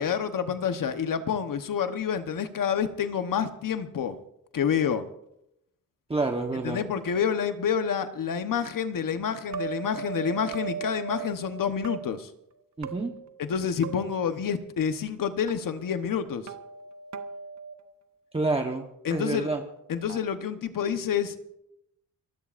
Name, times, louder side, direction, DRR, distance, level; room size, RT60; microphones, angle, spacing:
voice 1, 0.0-4.2 4.5-5.1 6.6-12.3 13.4-16.5 19.0-19.5 19.9-21.5, left 7 dB, 70° left, 9 dB, 1.1 m, -28 dB
voice 2, 6.1-6.8 12.8-13.1 18.3-19.6, right 3 dB, 15° right, 2 dB, 1.1 m, -28 dB
sound 1, 9.5-12.0 12.8-13.6 13.8-14.2 15.5-15.6 16.5-17.7 19.1-20.2, right 8 dB, 55° right, 1.0 m, -38 dB
25.5 x 16.0 x 2.6 m, 0.81 s
wide cardioid pair, 145°, 34 cm